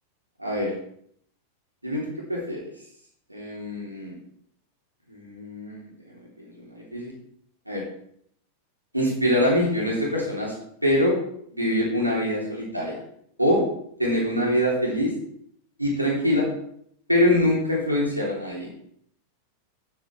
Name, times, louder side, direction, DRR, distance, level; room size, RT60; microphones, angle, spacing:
voice 1, 0.4-0.7 1.8-2.7 3.3-4.1 5.1-5.8 6.4-7.1 7.7-7.8 8.9-10.5 10.8-11.2 11.5-13.0 13.4-13.6 14.0-15.1 15.8-16.5 17.1-18.7, left 1 dB, 85° right, -2 dB, 3.3 m, -24 dB
9.3 x 8.3 x 4.4 m, 0.68 s
figure-of-eight pair, 90°, 0 cm